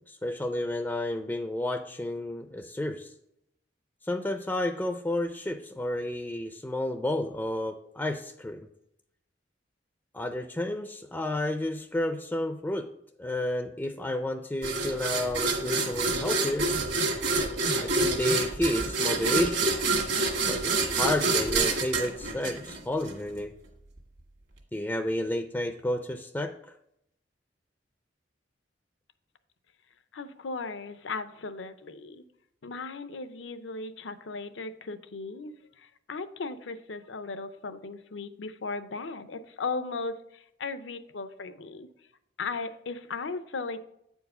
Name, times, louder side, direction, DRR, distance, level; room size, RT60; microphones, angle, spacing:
voice 1, 0.1-3.1 4.0-8.6 10.1-12.9 13.2-16.7 17.8-19.9 20.5-23.5 24.7-26.5, left 1 dB, 10° left, 5 dB, 0.4 m, -31 dB
sound 1, 14.6-23.1, right 3 dB, 65° right, 1.6 m, -27 dB
voice 2, 30.1-32.2 32.6-41.9 42.4-43.8, left 4 dB, 80° left, 11 dB, 0.6 m, -37 dB
8.4 x 4.7 x 5.4 m, 0.77 s
head